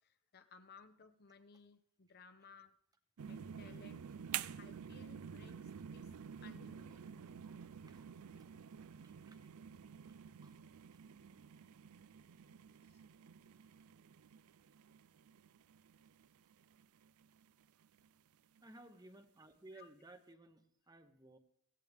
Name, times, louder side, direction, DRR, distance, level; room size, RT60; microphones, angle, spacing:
voice 1, 0.0-2.7 3.3-4.2 4.5-6.1 6.4-7.1 7.8-7.9 12.8-13.0 19.7-19.9, left 5 dB, 45° left, 10 dB, 0.7 m, -60 dB
sound 1, 3.2-18.1 18.6-18.7, right 8 dB, 80° right, 0.4 m, -50 dB
voice 2, 18.6-21.4, right 2 dB, 15° right, 8 dB, 0.9 m, -58 dB
16.0 x 15.5 x 3.5 m, 0.68 s
head